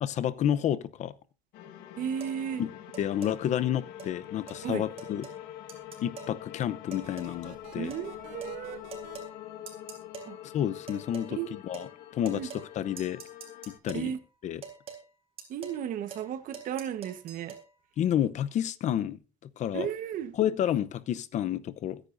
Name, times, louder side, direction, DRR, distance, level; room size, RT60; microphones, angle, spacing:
voice 1, 0.0-1.1 2.6-2.7 3.0-5.3 6.0-7.9 10.4-13.2 13.7-14.2 14.4-14.6 18.0-19.2 19.6-19.9 20.3-22.0, left 10 dB, 45° left, 0.8 m, -30 dB
sound 1, 1.5-13.8, left 12 dB, 65° left, 1.6 m, -45 dB
voice 2, 2.0-2.6 4.6-4.8 7.8-8.8 10.3-10.4 11.3-11.5 12.3-12.5 13.9-14.2 15.5-17.6 19.7-20.3, right 9 dB, 50° right, 1.3 m, -34 dB
sound 2, 2.2-2.4 2.9-3.4 4.0-4.1 4.5-4.6 5.0-5.4 5.7-6.4 6.9-7.4 7.9-8.1 8.4-8.6 8.9-9.3 9.7-10.3 10.9-11.3 11.7-11.9 12.2-12.7 13.0-14.1 14.6-15.0 15.4-15.8 16.1-16.3 16.5-17.6, right 6 dB, 35° right, 3.9 m, -45 dB
sound 3, 7.0-9.2, right 9 dB, 90° right, 3.5 m, -51 dB
22.5 x 10.0 x 2.6 m
cardioid pair, 130°, 17 cm